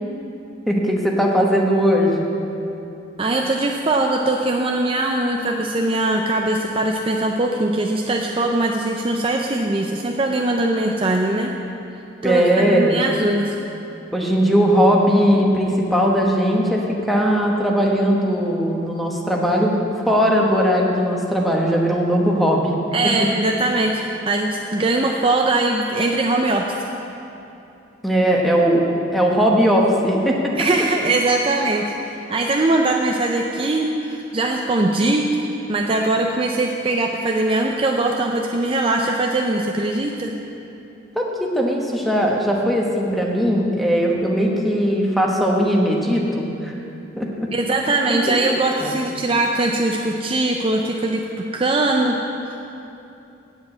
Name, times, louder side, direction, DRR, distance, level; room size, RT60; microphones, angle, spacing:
voice 1, 0.7-2.2 12.2-13.0 14.1-22.8 23.0-23.1 28.0-28.8 29.1-30.5 41.1-46.8 47.2-47.5 48.1-48.4 48.8-48.9, equal, ahead, -1 dB, 1.1 m, -19 dB
voice 2, 3.2-11.5 12.2-13.6 22.9-24.0 24.3-26.6 30.6-40.3 47.5-52.1 52.5-52.6, right 2 dB, 30° right, 1 dB, 0.5 m, -21 dB
8.4 x 7.3 x 8.5 m, 2.8 s
head